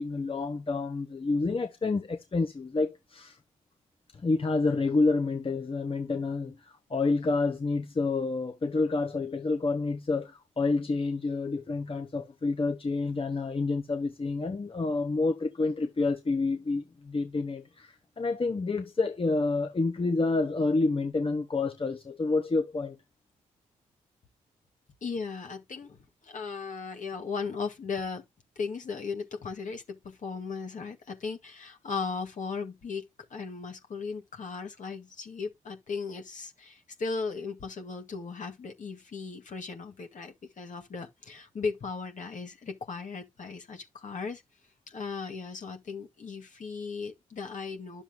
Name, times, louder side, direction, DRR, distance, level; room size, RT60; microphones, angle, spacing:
voice 1, 0.0-3.4 4.2-6.6 6.9-23.0, left 3 dB, 35° left, 1.4 m, -28 dB
voice 2, 25.0-28.2 28.6-44.4 44.9-48.0, left 5 dB, 60° left, 2.1 m, -37 dB
10.5 x 7.1 x 2.3 m
supercardioid pair, 50°, 15 cm